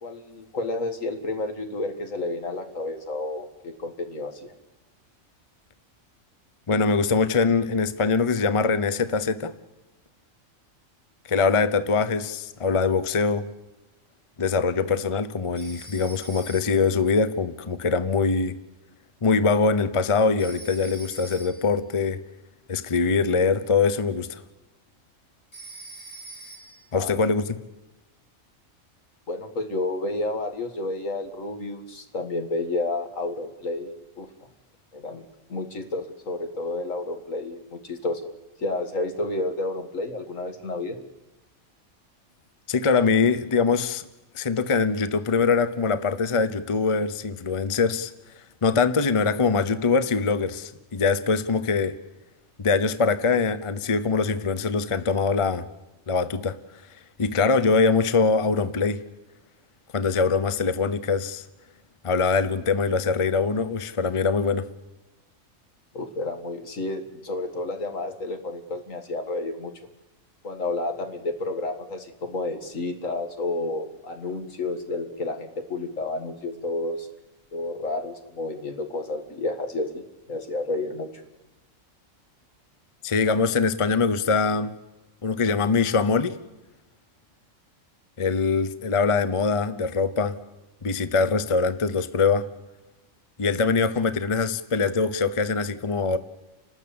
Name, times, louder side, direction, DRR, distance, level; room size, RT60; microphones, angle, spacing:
voice 1, 0.0-4.5 26.9-27.2 29.3-33.9 34.2-34.3 34.9-38.3 38.6-41.0 65.9-69.7 70.4-77.1 77.5-80.0 80.3-81.2, left 2 dB, 75° left, 2.4 m, -30 dB
voice 2, 6.7-9.6 11.3-13.5 14.4-18.6 19.2-22.2 22.7-24.4 26.9-27.6 42.7-44.1 44.3-48.1 48.6-52.0 52.6-55.7 56.1-56.6 57.2-59.0 59.9-61.4 62.0-64.7 83.0-84.7 85.2-86.4 88.2-90.4 90.8-92.5 93.4-96.2, left 4 dB, 30° left, 0.8 m, -23 dB
Telephone, 15.6-17.0 20.4-21.8 25.5-26.9, right 3 dB, 55° left, 7.0 m, -44 dB
30.0 x 13.0 x 8.7 m
omnidirectional pair, 1.4 m